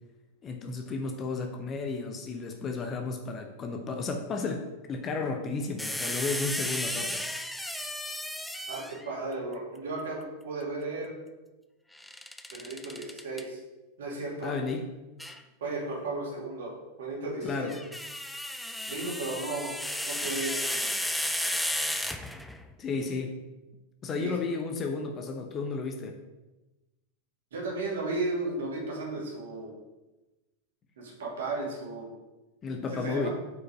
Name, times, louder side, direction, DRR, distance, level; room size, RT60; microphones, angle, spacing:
voice 1, 0.4-7.2 14.4-14.9 17.4-17.8 22.8-23.4 24.0-26.2 32.6-33.3, left 4 dB, 25° left, 4 dB, 0.9 m, -33 dB
sound 1, 5.8-9.1 12.0-13.4 15.2-15.4 17.5-22.6, left 1 dB, 5° left, 0.5 m, -33 dB
voice 2, 8.7-11.2 12.5-13.6 14.0-14.5 15.6-17.8 18.9-20.9 24.1-24.4 27.5-29.7 31.0-32.1 32.9-33.3, right 2 dB, 60° right, -2 dB, 2.7 m, -35 dB
8.0 x 5.3 x 5.2 m, 1.1 s
figure-of-eight pair, 90°, 0 cm